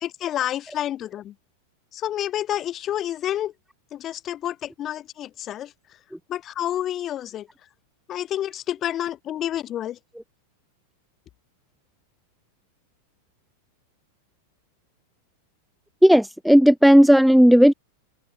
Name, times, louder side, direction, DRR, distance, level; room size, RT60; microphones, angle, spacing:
voice 1, 0.0-1.3 1.9-3.5 3.9-5.7 6.3-7.5 8.1-10.0, left 11 dB, 30° left, 3.5 m, -29 dB
voice 2, 16.0-17.7, equal, ahead, 0.7 m, -13 dB
open air
figure-of-eight pair, 90°, 0 cm